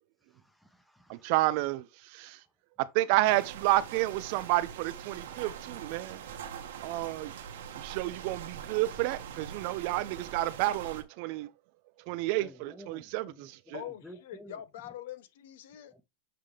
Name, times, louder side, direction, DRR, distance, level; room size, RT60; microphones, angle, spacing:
voice 1, 0.3-1.3 12.3-14.6 15.9-16.0, equal, ahead, 1.0 m, -53 dB
voice 2, 1.1-2.4 2.8-6.2 6.8-7.3 7.8-11.5 12.1-13.8, right 17 dB, 55° right, 0.5 m, -30 dB
sound 1, 3.2-11.0, right 8 dB, 85° right, 1.3 m, -43 dB
voice 3, 13.7-15.9, left 11 dB, 75° left, 0.8 m, -43 dB
7.6 x 3.8 x 3.3 m
supercardioid pair, 150°, 0 cm